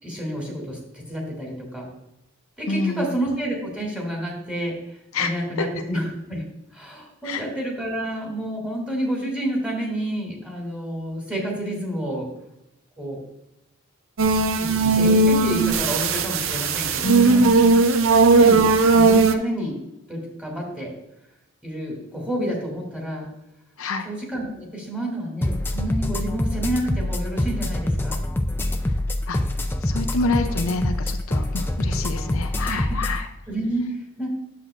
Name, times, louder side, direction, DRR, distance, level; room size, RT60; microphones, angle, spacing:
voice 1, 0.0-1.9 2.6-4.7 5.2-6.5 6.7-12.3 13.0-13.2 14.3-17.5 18.3-19.8 20.1-20.9 21.6-23.3 24.0-28.2 32.7-33.0 33.5-34.3, right 1 dB, 5° right, -2 dB, 2.4 m, -29 dB
voice 2, 2.7-3.1 5.1-5.3 5.6-5.7 7.2-7.4 17.0-17.8 23.8-24.1 29.3-29.4 29.8-33.3, left 3 dB, 75° left, 7 dB, 0.6 m, -27 dB
sound 1, 14.2-19.4, right 3 dB, 65° right, 0.6 m, -17 dB
sound 2, 25.4-33.2, left 1 dB, 10° left, 0.4 m, -25 dB
10.0 x 7.7 x 2.5 m, 0.87 s
head